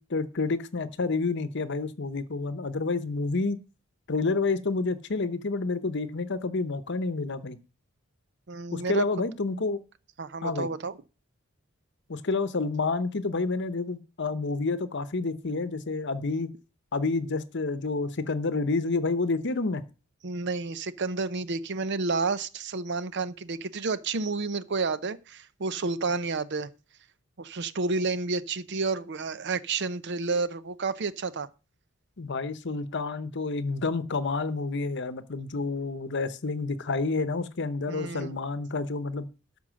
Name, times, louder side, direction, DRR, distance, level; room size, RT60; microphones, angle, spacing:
voice 1, 0.0-3.6 4.1-7.6 8.7-9.8 10.4-10.7 12.1-16.5 16.9-19.8 32.2-39.3, left 3 dB, 55° left, 0.8 m, -29 dB
voice 2, 8.5-9.0 10.2-11.0 20.2-26.7 27.4-31.5 37.9-38.4, right 4 dB, 55° right, 0.7 m, -30 dB
12.5 x 5.5 x 6.3 m
head